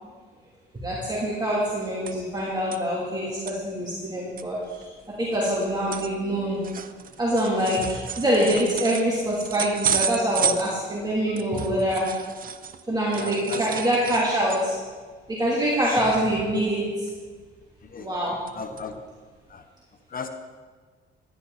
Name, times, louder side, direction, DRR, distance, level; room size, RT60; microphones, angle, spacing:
voice 1, 0.7-4.9 5.2-6.6 7.2-12.1 12.9-14.8 15.3-17.1 18.0-18.4, equal, 20° right, -6 dB, 3.1 m, -25 dB
sound 1, 1.7-2.4 2.7-2.8 3.2-3.5 4.0-4.1 4.4-12.8 13.1-14.9 15.3-15.5 15.8-16.0 17.1-17.6 18.0-18.5 18.8-18.9 19.5-19.6, right 8 dB, 45° right, 0.7 m, -32 dB
voice 2, 11.3-11.8 13.2-13.7 17.8-18.1 18.5-19.0 19.5-19.6 20.1-20.3, left 5 dB, 45° left, 7 dB, 1.0 m, -37 dB
12.5 x 11.5 x 4.1 m, 1.5 s
cardioid pair, 90°, 20 cm